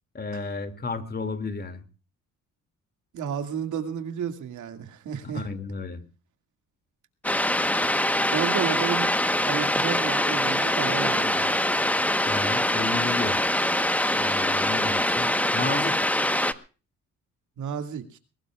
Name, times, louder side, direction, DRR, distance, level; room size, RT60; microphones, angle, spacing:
voice 1, 0.1-1.8 5.2-6.0 12.3-13.4 14.1-16.0, left 4 dB, 30° left, 9 dB, 2.5 m, -33 dB
voice 2, 3.1-5.5 8.2-9.1 9.4-11.6 17.6-18.2, right 8 dB, 75° right, 7 dB, 2.4 m, -31 dB
sound 1, 7.2-16.5, left 1 dB, 5° left, 1.2 m, -24 dB
22.5 x 18.0 x 2.5 m, 0.35 s
cardioid pair, 90°, 30 cm